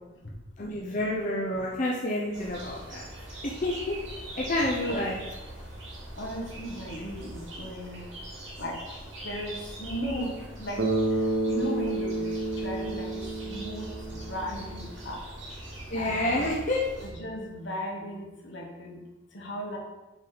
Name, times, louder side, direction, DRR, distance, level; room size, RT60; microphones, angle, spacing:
voice 1, 0.6-3.1 3.4-3.9 4.3-5.2 15.9-16.8, left 1 dB, 40° left, -3 dB, 0.7 m, -29 dB
sound 1, 2.3-17.1, right 1 dB, 80° right, 2.4 m, -42 dB
voice 2, 6.2-8.0 8.6-8.7 9.2-10.8 11.5-12.2 12.6-13.9 14.3-15.2 15.9-16.5 17.0-19.0 19.3-19.8, equal, 65° left, -1 dB, 1.5 m, -36 dB
Bass guitar, 10.8-14.8, right 2 dB, 60° right, 1.1 m, -30 dB
7.2 x 4.0 x 5.0 m, 1.1 s
head